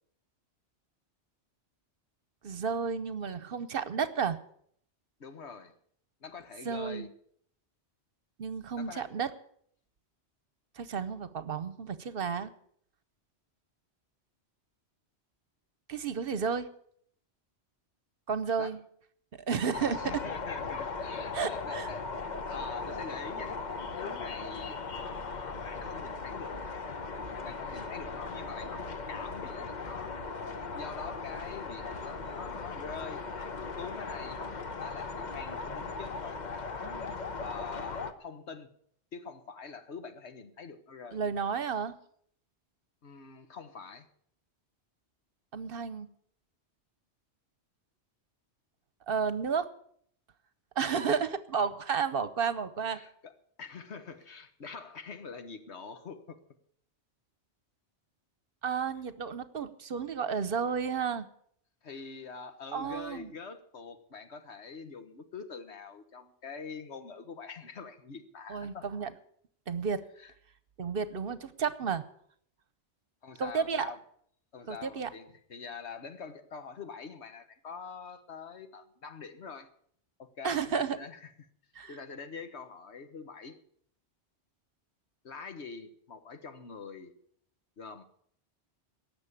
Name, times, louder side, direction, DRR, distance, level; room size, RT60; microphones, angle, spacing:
voice 1, 2.4-4.4 6.6-7.1 8.4-9.3 10.8-12.5 15.9-16.7 18.3-18.8 19.5-20.2 21.3-21.9 41.1-42.0 45.5-46.1 49.1-49.7 50.8-53.0 58.6-61.2 62.7-63.3 68.5-69.1 69.7-70.0 70.8-72.0 73.4-73.9 74.7-75.1 80.4-81.0 81.8-82.0, right 6 dB, 55° right, 14 dB, 1.0 m, -32 dB
voice 2, 5.2-5.7 6.2-7.1 8.8-9.1 18.6-18.7 20.0-22.1 22.4-23.6 23.9-26.6 27.4-30.1 30.7-33.3 33.8-34.4 34.8-37.0 37.4-38.7 39.1-41.2 43.0-44.1 52.9-53.3 53.6-56.4 61.8-68.9 70.2-70.3 73.2-74.0 74.5-79.7 80.2-81.3 81.9-83.6 85.2-87.1 87.8-88.1, left 5 dB, 75° left, 9 dB, 1.6 m, -45 dB
sound 1, 19.7-38.1, left 4 dB, 40° left, 1.0 m, -38 dB
18.0 x 7.0 x 8.5 m, 0.64 s
omnidirectional pair, 1.2 m